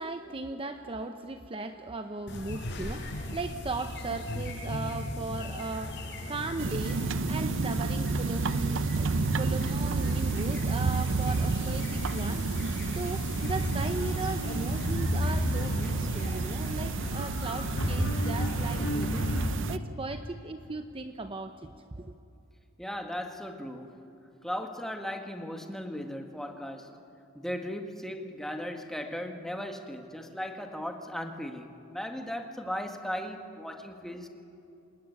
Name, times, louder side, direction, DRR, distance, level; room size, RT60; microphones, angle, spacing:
voice 1, 0.0-19.3 19.7-22.1, right 3 dB, 25° right, 7 dB, 0.8 m, -37 dB
sound 1, 2.3-19.5, equal, 55° left, 5.2 m, -34 dB
sound 2, 6.6-19.8, right 4 dB, 60° right, 0.6 m, -31 dB
voice 2, 22.8-24.0 24.4-27.0 27.4-34.3, equal, ahead, 4 dB, 1.8 m, -37 dB
26.5 x 20.5 x 9.8 m, 2.7 s
head